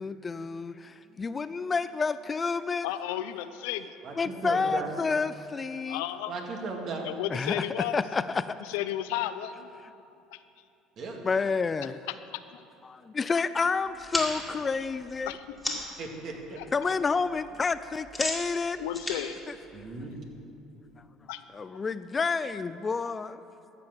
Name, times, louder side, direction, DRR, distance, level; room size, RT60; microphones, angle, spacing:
voice 1, 0.0-2.9 4.2-6.0 7.3-7.6 7.9-8.4 11.2-12.0 12.9-15.3 16.7-18.8 21.5-23.4, left 4 dB, 25° left, 14 dB, 0.3 m, -29 dB
voice 2, 2.8-3.8 5.9-6.4 7.0-8.0 8.6-9.7 10.3-10.4 12.1-12.2 12.5-12.6 15.3-15.8 16.6-16.9 18.8-19.4 21.3-21.4, left 13 dB, 85° left, 12 dB, 0.5 m, -33 dB
voice 3, 4.0-4.9 6.3-7.1 11.0-11.2 16.0-16.6 19.7-20.1, right 3 dB, 55° right, 1 dB, 2.1 m, -36 dB
sound 1, 13.9-16.0 16.4-16.9 17.1-20.4, left 1 dB, 10° left, 2.1 m, -36 dB
14.0 x 5.7 x 7.4 m, 2.7 s
supercardioid pair, 95°, 0 cm